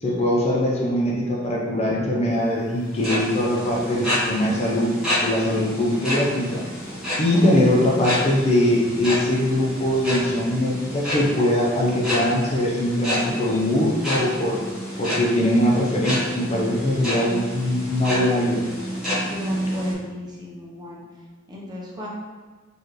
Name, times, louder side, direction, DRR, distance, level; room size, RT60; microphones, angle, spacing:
voice 1, 0.0-6.6 7.2-14.6 15.0-18.6, left 1 dB, 35° left, -3 dB, 0.6 m, -21 dB
sound 1, 2.8-19.9, equal, 5° right, 1.5 m, -29 dB
voice 2, 19.1-21.0 21.5-22.1, left 1 dB, 20° right, -4 dB, 0.8 m, -36 dB
4.4 x 3.3 x 3.0 m, 1.3 s
head